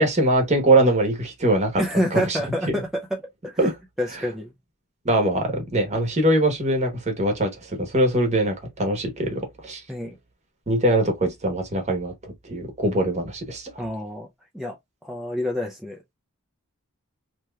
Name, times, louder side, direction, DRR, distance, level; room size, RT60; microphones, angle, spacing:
voice 1, 0.0-1.8 2.1-2.4 3.6-3.7 5.0-9.8 10.7-13.7, right 1 dB, 30° right, 1.0 m, -22 dB
voice 2, 1.8-3.2 3.4-3.7 4.0-4.5 9.9-10.2 13.8-14.3 14.5-14.8 15.0-16.0, equal, ahead, 0.4 m, -27 dB
3.3 x 2.9 x 2.2 m
head